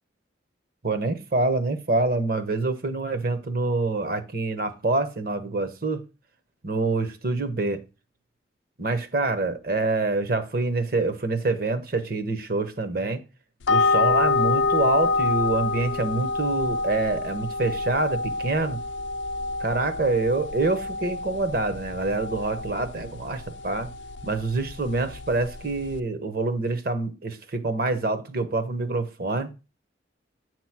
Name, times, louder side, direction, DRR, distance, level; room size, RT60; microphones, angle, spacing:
voice 1, 0.8-6.0 6.6-7.8 8.8-13.2 13.7-18.8 19.6-23.9 24.2-29.5, right 3 dB, 55° right, 0.9 m, -26 dB
sound 1, 13.6-26.0, left 3 dB, 80° left, 0.5 m, -27 dB
8.3 x 3.0 x 5.9 m
head